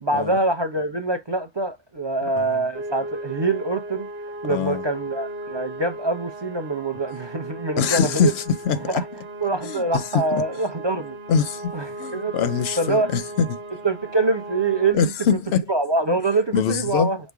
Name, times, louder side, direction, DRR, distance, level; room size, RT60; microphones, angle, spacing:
voice 1, 0.0-4.1 4.4-8.3 8.8-9.0 9.4-11.2 11.7-12.5 12.8-13.1 13.8-15.1 15.7-17.2, right 3 dB, 35° right, 0.5 m, -24 dB
sound 1, 2.7-14.9, right 1 dB, 85° right, 1.1 m, -36 dB
voice 2, 4.5-4.8 7.8-9.0 9.6-10.4 11.3-11.7 12.0-13.6 14.9-15.6 16.5-17.1, left 6 dB, 85° left, 0.8 m, -23 dB
5.2 x 2.1 x 4.5 m
omnidirectional pair, 1.0 m